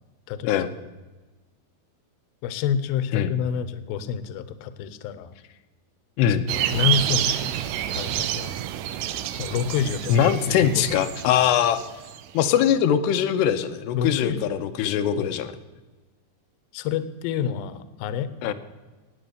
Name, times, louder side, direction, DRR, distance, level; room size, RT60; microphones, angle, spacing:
voice 1, 0.3-0.6 2.4-5.3 6.3-7.6 7.9-8.6 9.3-10.8 13.9-14.6 15.2-15.4 16.7-18.5, left 8 dB, 75° left, 13 dB, 2.5 m, -28 dB
voice 2, 6.2-6.5 10.1-11.8 12.3-15.5 18.4-18.5, left 9 dB, 90° left, 7 dB, 2.9 m, -22 dB
sound 1, 6.5-12.2, right 11 dB, 80° right, 2.7 m, -28 dB
18.5 x 8.5 x 6.8 m, 1.2 s
omnidirectional pair, 4.9 m